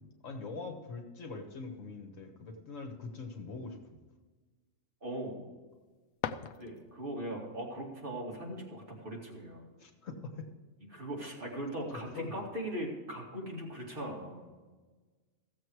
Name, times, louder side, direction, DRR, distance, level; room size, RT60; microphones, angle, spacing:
voice 1, 0.0-3.8 9.8-10.5 11.9-12.5, left 3 dB, 70° left, 4 dB, 1.7 m, -43 dB
voice 2, 5.0-5.4 6.6-9.6 10.9-14.4, right 1 dB, 40° right, -3 dB, 2.7 m, -39 dB
sound 1, 5.7-7.2, left 9 dB, 90° left, 1.0 m, -41 dB
15.5 x 7.2 x 4.7 m, 1.3 s
omnidirectional pair, 1.4 m